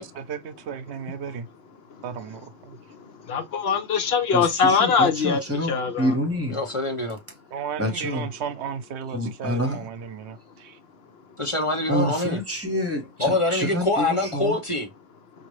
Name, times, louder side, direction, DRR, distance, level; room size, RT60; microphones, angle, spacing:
voice 1, 0.1-1.5 2.0-2.8 7.5-10.8, right 7 dB, 85° right, 0.9 m, -34 dB
voice 2, 2.9-5.4 5.7-6.1, left 6 dB, 70° left, 0.9 m, -22 dB
voice 3, 4.3-6.6 7.8-8.3 9.1-9.8 11.9-14.5, equal, 15° right, 1.3 m, -27 dB
voice 4, 6.5-7.2 11.4-12.4 13.2-14.9, left 2 dB, 30° left, 0.8 m, -25 dB
5.0 x 2.5 x 3.1 m
omnidirectional pair, 1.1 m